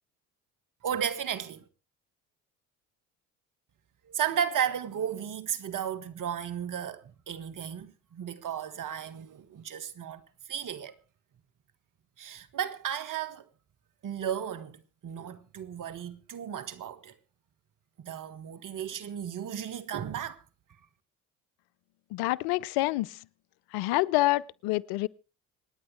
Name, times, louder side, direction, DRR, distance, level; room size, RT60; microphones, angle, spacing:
voice 1, 0.8-1.6 4.1-10.2 10.5-11.0 12.2-13.5 14.0-17.1 18.0-20.4, right 9 dB, 55° right, 1.7 m, -34 dB
voice 2, 22.1-23.1 23.7-25.1, left 19 dB, 75° left, 0.6 m, -27 dB
26.5 x 9.6 x 3.3 m
hypercardioid pair, 60°, 38 cm